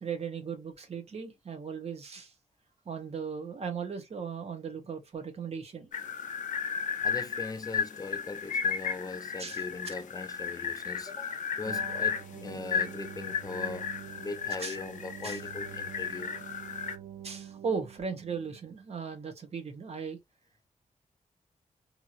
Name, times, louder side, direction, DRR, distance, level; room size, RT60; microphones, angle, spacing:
voice 1, 0.0-2.3 2.9-5.9 9.4-9.9 14.6-14.8 15.2-15.4 17.2-20.2, right 6 dB, 55° right, 0.9 m, -37 dB
sound 1, 5.9-17.0, left 6 dB, 75° left, 0.6 m, -34 dB
voice 2, 7.0-13.9 14.2-16.4, left 3 dB, 30° left, 0.4 m, -40 dB
sound 2, 11.6-18.7, right 10 dB, 80° right, 0.5 m, -46 dB
2.9 x 2.7 x 2.4 m
wide cardioid pair, 125°, 13 cm